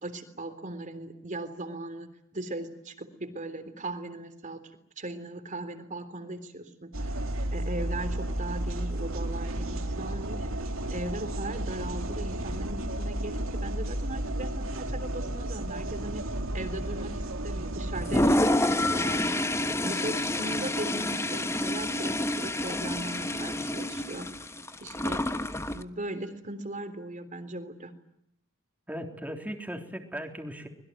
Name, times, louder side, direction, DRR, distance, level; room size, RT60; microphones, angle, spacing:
voice 1, 0.0-4.6 5.0-7.2 7.5-10.5 10.9-24.5 24.8-25.3 25.7-27.9, right 2 dB, 40° right, 10 dB, 3.5 m, -38 dB
sound 1, 6.9-18.3, right 1 dB, 80° right, 2.8 m, -33 dB
Toilet flush, 17.9-25.8, left 1 dB, 15° left, 1.2 m, -28 dB
voice 2, 28.9-30.7, equal, 10° right, 3 dB, 3.6 m, -37 dB
25.0 x 21.5 x 9.4 m, 0.77 s
head